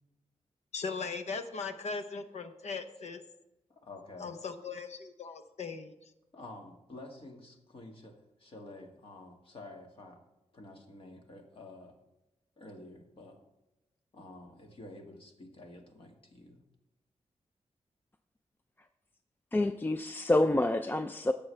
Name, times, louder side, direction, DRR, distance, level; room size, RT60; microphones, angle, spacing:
voice 1, 0.7-3.2 4.2-5.9, left 4 dB, 75° left, 8 dB, 0.8 m, -38 dB
voice 2, 3.7-4.3 6.3-10.2 10.5-12.0 12.6-13.4 14.1-16.6, left 2 dB, 50° left, 2 dB, 1.8 m, -49 dB
voice 3, 19.5-21.3, left 1 dB, 15° left, 8 dB, 0.4 m, -27 dB
16.5 x 7.0 x 3.3 m, 0.95 s
wide cardioid pair, 145°, 12 cm